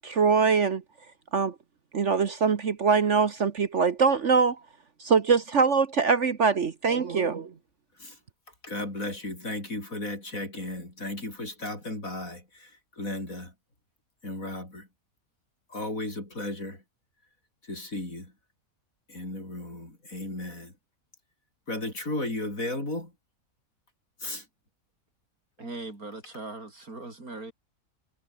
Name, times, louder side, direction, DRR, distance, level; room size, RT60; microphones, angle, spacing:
voice 1, 0.0-0.8 1.3-1.5 1.9-4.6 5.0-7.5, right 5 dB, 55° right, 1.5 m, -23 dB
voice 2, 8.6-13.5 14.2-14.9 15.7-16.8 17.6-18.3 19.1-20.7 21.7-23.1 24.2-24.5, left 2 dB, 65° left, 7.9 m, -35 dB
voice 3, 25.6-27.5, right 2 dB, 75° right, 5.8 m, -39 dB
omnidirectional pair, 1.6 m